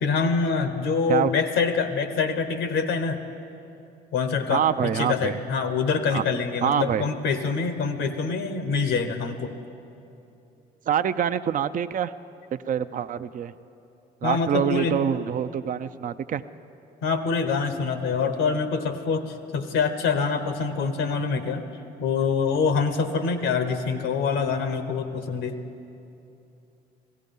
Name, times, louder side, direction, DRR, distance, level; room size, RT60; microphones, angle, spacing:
voice 1, 0.0-3.2 4.1-9.5 14.2-14.9 17.0-21.7 22.0-25.6, left 5 dB, 85° left, 9 dB, 1.0 m, -25 dB
voice 2, 4.5-5.4 6.1-6.2 6.6-7.1 10.9-12.1 12.5-13.5 14.2-16.4, right 8 dB, 45° right, 12 dB, 0.5 m, -25 dB
16.0 x 15.0 x 5.4 m, 2.7 s
supercardioid pair, 60°, 20 cm